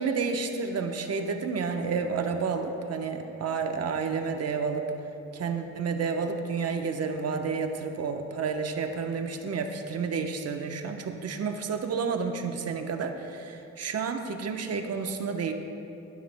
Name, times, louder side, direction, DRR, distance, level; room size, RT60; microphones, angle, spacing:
voice 1, 0.0-4.9 5.3-15.5, right 5 dB, 55° right, 5 dB, 1.0 m, -30 dB
17.0 x 12.5 x 2.2 m, 2.9 s
cardioid pair, 90°, 30 cm